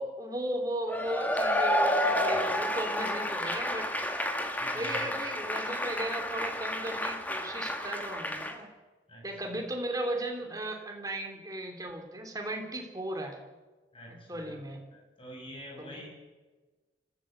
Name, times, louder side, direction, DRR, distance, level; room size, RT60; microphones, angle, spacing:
voice 1, 0.0-4.1 4.7-8.7 9.2-13.4 14.1-14.8 15.8-16.1, right 1 dB, 20° right, 3 dB, 3.2 m, -36 dB
Cheering / Applause / Crowd, 0.9-8.5, left 1 dB, 10° left, 1.7 m, -30 dB
voice 2, 4.6-5.0 9.1-9.5 13.9-14.6 14.9-16.1, equal, 30° left, 0 dB, 7.6 m, -47 dB
25.0 x 15.5 x 8.0 m, 1.3 s
head